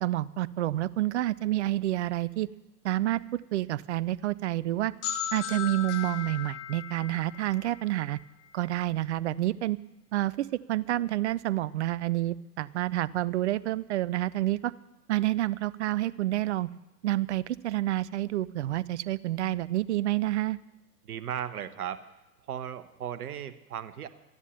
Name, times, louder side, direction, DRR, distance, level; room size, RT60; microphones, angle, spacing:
voice 1, 0.0-2.5 2.8-4.9 5.3-8.2 8.5-9.8 10.1-14.7 15.1-16.7 17.0-20.6, right 15 dB, 45° right, 19 dB, 0.5 m, -29 dB
sound 1, 5.0-8.7, left 11 dB, 45° left, 1.3 m, -37 dB
voice 2, 21.0-22.0 22.5-24.1, right 9 dB, 65° right, 12 dB, 1.2 m, -36 dB
13.0 x 11.0 x 7.0 m, 0.98 s
figure-of-eight pair, 100°, 49 cm